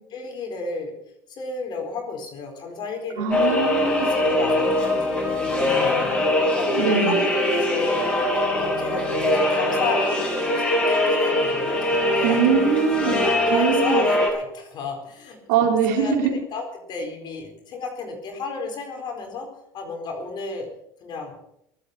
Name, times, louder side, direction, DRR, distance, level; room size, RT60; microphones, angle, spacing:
voice 1, 0.1-0.9 1.3-3.5 4.1-6.1 6.6-8.0 8.6-10.5 10.9-12.6 13.0-15.4 15.9-19.5 19.7-20.7 21.0-21.3, left 4 dB, 50° left, 3 dB, 4.2 m, -32 dB
voice 2, 3.2-4.1 6.8-7.1 12.2-13.2 13.5-14.0 15.5-16.3, right 6 dB, 85° right, 1 dB, 4.6 m, -22 dB
sound 1, 3.3-14.3, left 1 dB, 15° left, 7.2 m, -22 dB
23.0 x 8.1 x 6.7 m, 0.77 s
supercardioid pair, 100°, 9 cm